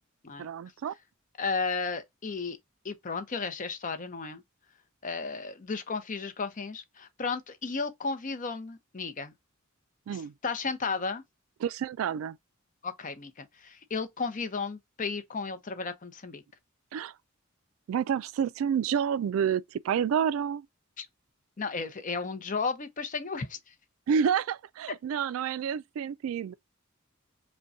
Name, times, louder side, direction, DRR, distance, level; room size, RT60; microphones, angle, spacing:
voice 1, 0.4-0.9 10.1-10.3 11.6-12.4 16.9-17.1 17.9-20.7 24.1-26.5, right 7 dB, 80° right, 0.3 m, -29 dB
voice 2, 1.4-2.6 2.8-4.4 5.0-9.3 10.1-11.2 12.8-16.4 21.0-21.1 21.6-23.6, left 4 dB, 40° left, 0.7 m, -34 dB
5.2 x 2.2 x 2.5 m
head